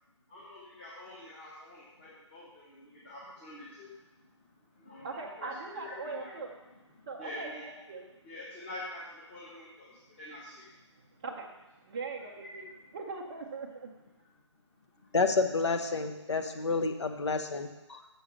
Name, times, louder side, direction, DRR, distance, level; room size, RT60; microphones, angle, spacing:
voice 1, 0.3-5.1 5.4-6.3 6.9-7.7 8.2-10.7 11.0-11.1 12.5-12.6 14.2-15.1, left 1 dB, 20° left, -7 dB, 1.3 m, -47 dB
voice 2, 5.0-6.5 7.1-8.0 11.2-11.5 11.8-12.7 12.9-13.9, right 4 dB, 15° right, -4 dB, 0.4 m, -40 dB
voice 3, 15.1-17.7, left 4 dB, 65° left, 6 dB, 1.0 m, -29 dB
6.8 x 5.5 x 6.3 m, 1.0 s
figure-of-eight pair, 160°, 16 cm